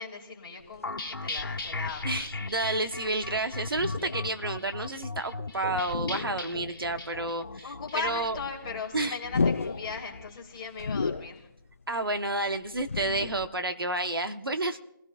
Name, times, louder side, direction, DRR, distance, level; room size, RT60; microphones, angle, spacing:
voice 1, 0.0-2.1 7.6-11.5, left 5 dB, 20° left, -4 dB, 2.9 m, -38 dB
sound 1, 0.6-5.5 5.8-7.1 7.3-7.4 7.7-13.5, left 4 dB, 40° left, 0.5 m, -35 dB
sound 2, 0.8-10.3, left 3 dB, 75° left, 1.9 m, -38 dB
voice 2, 2.0-8.4 8.9-9.2 11.9-14.8, right 2 dB, 80° right, 7 dB, 1.3 m, -30 dB
27.5 x 17.0 x 2.6 m, 0.86 s
figure-of-eight pair, 170°, 12 cm